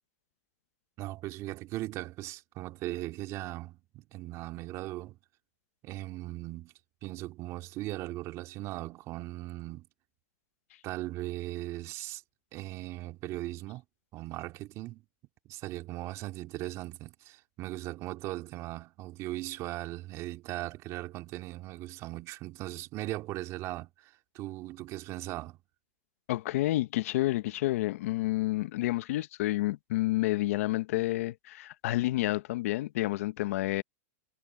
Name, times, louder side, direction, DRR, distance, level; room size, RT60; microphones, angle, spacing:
voice 1, 1.0-5.2 5.8-6.7 7.0-9.9 10.8-12.2 12.5-13.8 14.1-15.0 15.4-25.6, right 17 dB, 35° right, 2.7 m, -38 dB
voice 2, 26.3-33.8, left 17 dB, 65° left, 1.1 m, -29 dB
supercardioid pair, 140°, 8 cm